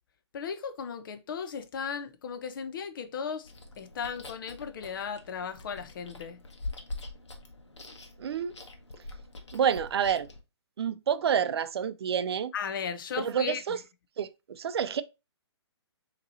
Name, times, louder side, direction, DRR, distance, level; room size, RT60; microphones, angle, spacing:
voice 1, 0.3-3.5 3.8-6.4 12.5-13.8, left 6 dB, 50° left, 0.6 m, -36 dB
Chewing mastication, 3.4-10.4, left 2 dB, 80° left, 1.1 m, -44 dB
voice 2, 8.2-8.5 9.5-10.3 10.8-12.5 13.2-13.8 14.2-15.0, right 8 dB, 65° right, 0.4 m, -28 dB
5.9 x 2.9 x 2.7 m
hypercardioid pair, 140°, 15 cm